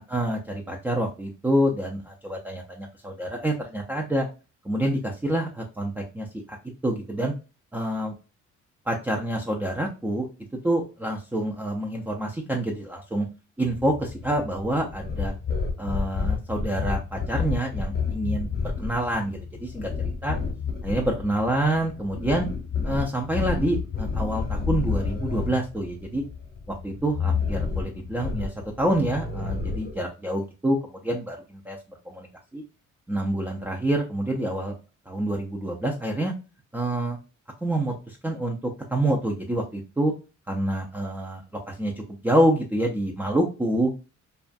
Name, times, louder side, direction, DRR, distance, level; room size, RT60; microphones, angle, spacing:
voice 1, 0.1-4.3 4.6-6.6 6.8-7.3 7.7-8.1 8.9-10.3 10.6-13.3 13.6-15.3 15.8-18.5 18.8-20.4 20.8-22.5 22.8-26.2 26.7-31.8 32.1-32.3 32.5-32.6 33.1-34.7 35.1-36.3 36.7-37.2 37.6-40.1 40.5-43.9, right 1 dB, 5° right, 0 dB, 0.3 m, -27 dB
sound 1, 13.6-29.9, left 5 dB, 30° left, 0.8 m, -30 dB
2.4 x 2.2 x 2.4 m, 0.32 s
cardioid pair, 90°, 30 cm